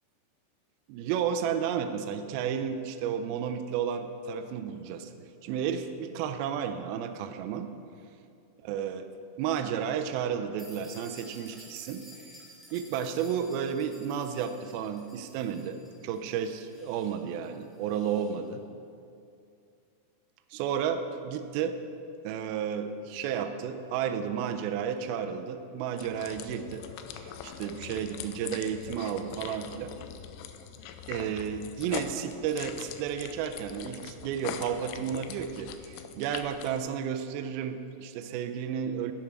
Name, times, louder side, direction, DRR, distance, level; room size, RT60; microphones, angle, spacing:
voice 1, 0.9-5.1 5.4-7.7 8.7-9.1 9.4-12.0 12.7-18.6 20.5-21.8 22.2-26.8 27.2-29.9 31.1-39.1, right 8 dB, 85° right, 7 dB, 2.1 m, -32 dB
sound 1, 10.6-18.4, equal, ahead, 0.8 m, -53 dB
sound 2, 26.0-36.8, left 8 dB, 85° left, 2.6 m, -42 dB
11.0 x 8.6 x 4.6 m, 2.5 s
omnidirectional pair, 4.9 m